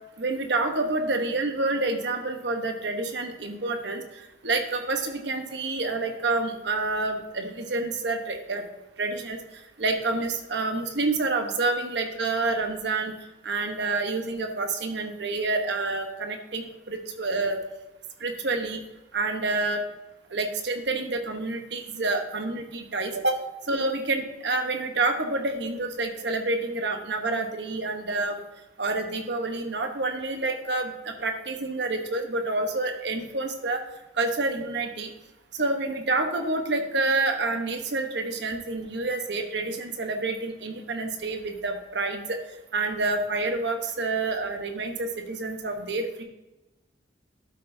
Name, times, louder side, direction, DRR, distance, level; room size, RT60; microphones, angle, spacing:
voice 1, 0.2-4.0 4.4-8.7 9.0-9.4 9.8-13.1 13.4-17.6 18.2-18.8 19.1-19.8 20.3-23.4 23.7-28.4 28.8-33.8 34.2-35.1 35.6-42.4 42.7-46.2, right 3 dB, 70° right, 5 dB, 1.0 m, -28 dB
12.0 x 5.8 x 2.7 m, 1.0 s
head